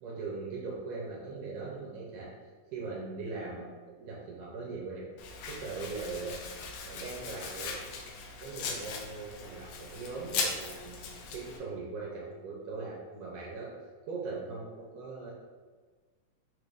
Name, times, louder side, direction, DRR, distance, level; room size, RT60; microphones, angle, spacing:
voice 1, 0.0-2.3 2.7-5.1 5.5-6.4 6.8-7.8 8.4-13.7 14.1-15.3, right 4 dB, 85° right, -4 dB, 2.2 m, -40 dB
Domestic sounds home sounds, 5.2-11.6, left 5 dB, 80° left, 1.8 m, -39 dB
5.9 x 2.5 x 3.3 m, 1.4 s
omnidirectional pair, 3.8 m